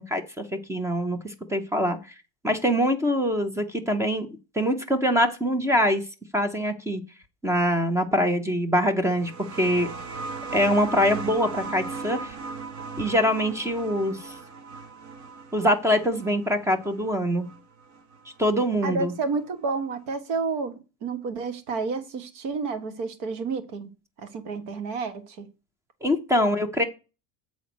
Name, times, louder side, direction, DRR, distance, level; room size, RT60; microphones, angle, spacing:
voice 1, 0.0-2.0 2.4-4.3 4.5-6.0 6.3-7.0 7.4-9.9 10.5-12.3 13.0-14.3 15.5-17.5 18.4-19.1 26.0-26.8, equal, 5° right, 0.5 m, -24 dB
sound 1, 9.0-18.3 19.4-19.5, right 4 dB, 35° right, 1.0 m, -38 dB
voice 2, 18.8-23.9 24.2-25.5, right 4 dB, 60° right, 1.7 m, -30 dB
8.2 x 4.1 x 6.0 m
cardioid pair, 155°, 49 cm